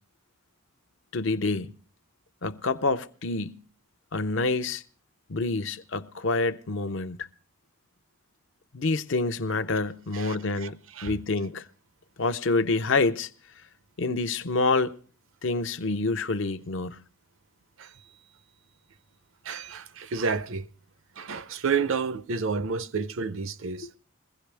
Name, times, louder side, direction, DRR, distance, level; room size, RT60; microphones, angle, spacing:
voice 1, 1.1-1.7 2.4-3.6 4.1-4.8 5.3-7.3 8.7-11.7 12.2-13.3 14.0-15.0 15.4-17.0 23.8-23.9, left 3 dB, 60° left, 0.6 m, -27 dB
voice 2, 10.1-10.7 11.0-11.2 17.8-17.9 19.4-20.7 21.2-23.9, right 5 dB, 70° right, 0.6 m, -30 dB
21.5 x 15.5 x 3.4 m
head